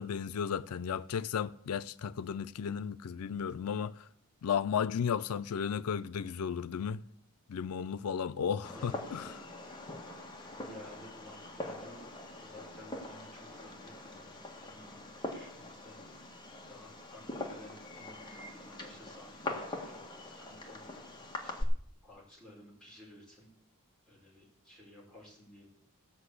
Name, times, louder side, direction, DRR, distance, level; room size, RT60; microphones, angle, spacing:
voice 1, 0.0-4.1 4.4-7.0 7.5-9.4, left 7 dB, 85° left, 0.4 m, -34 dB
Fireworks, 8.6-21.6, left 2 dB, 20° left, 1.6 m, -43 dB
voice 2, 10.5-12.1 12.4-21.0 21.4-21.7 22.0-23.5 24.1-25.7, left 1 dB, 5° left, 5.0 m, -54 dB
15.0 x 6.0 x 8.1 m
head